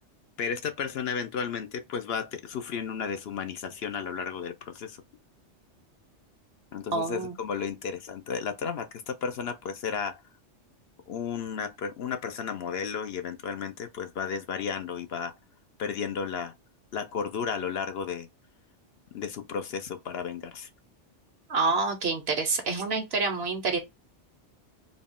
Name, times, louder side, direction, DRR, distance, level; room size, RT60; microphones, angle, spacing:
voice 1, 0.4-5.0 6.7-10.2 11.1-15.3 15.8-16.5 16.9-18.3 19.1-20.7, left 6 dB, 65° left, 0.8 m, -33 dB
voice 2, 6.9-7.3 21.5-23.8, right 4 dB, 60° right, 1.0 m, -27 dB
4.0 x 2.3 x 3.5 m
omnidirectional pair, 1.2 m